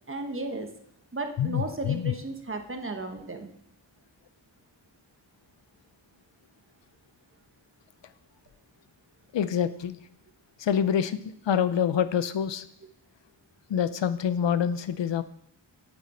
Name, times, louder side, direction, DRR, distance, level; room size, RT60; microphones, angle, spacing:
voice 1, 0.1-0.7 1.1-3.5, right 2 dB, 30° right, 5 dB, 1.1 m, -34 dB
voice 2, 1.4-2.1 9.3-10.0 10.6-12.7 13.7-15.2, left 8 dB, 80° left, 13 dB, 0.6 m, -26 dB
9.0 x 7.3 x 4.3 m, 0.73 s
wide cardioid pair, 95°, 43 cm